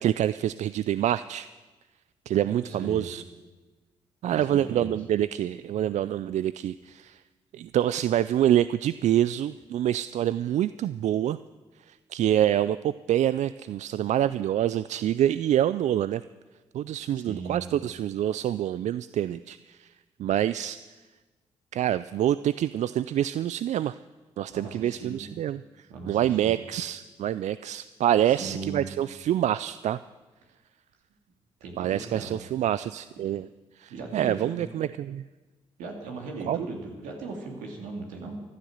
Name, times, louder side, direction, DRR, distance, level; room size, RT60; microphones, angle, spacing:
voice 1, 0.0-1.5 2.3-3.2 4.2-7.2 7.5-11.4 11.9-16.2 16.7-19.9 20.2-20.8 21.7-24.0 24.4-30.0 31.8-33.5 33.8-35.2 36.5-36.6, right 11 dB, 70° right, 16 dB, 0.4 m, -26 dB
voice 2, 2.5-3.1 4.3-5.0 17.1-17.7 24.5-25.3 25.9-26.6 28.3-28.9 31.6-32.4 33.9-34.6 35.8-38.4, right 3 dB, 90° right, 1 dB, 2.7 m, -38 dB
14.0 x 12.0 x 8.0 m, 1.3 s
supercardioid pair, 55°, 13 cm